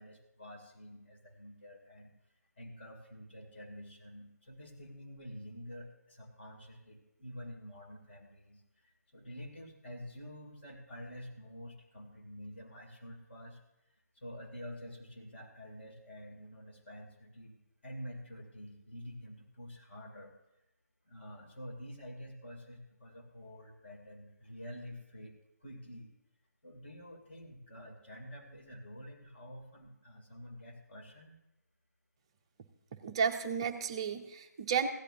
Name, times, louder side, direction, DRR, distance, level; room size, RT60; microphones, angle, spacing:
voice 1, 0.0-2.1 2.6-13.6 14.1-20.3 21.1-26.1 26.6-31.4, equal, 40° left, 0 dB, 2.6 m, -48 dB
voice 2, 33.0-34.9, right 6 dB, 20° right, 6 dB, 0.5 m, -32 dB
16.0 x 11.5 x 2.7 m, 0.88 s
figure-of-eight pair, 150°, 9 cm